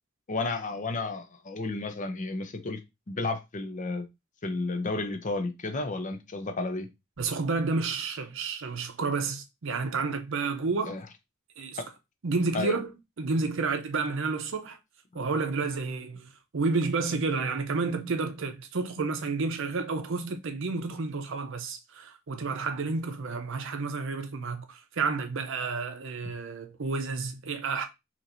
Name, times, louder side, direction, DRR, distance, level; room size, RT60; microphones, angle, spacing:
voice 1, 0.3-2.8 3.1-4.1 4.4-6.9 10.9-11.0 11.8-11.9 12.5-12.8, left 3 dB, 35° left, 0.6 m, -32 dB
voice 2, 7.2-11.0 11.6-11.8 12.2-12.9 13.2-14.8 15.1-27.9, right 4 dB, 60° right, 0.6 m, -30 dB
4.3 x 2.9 x 2.6 m
head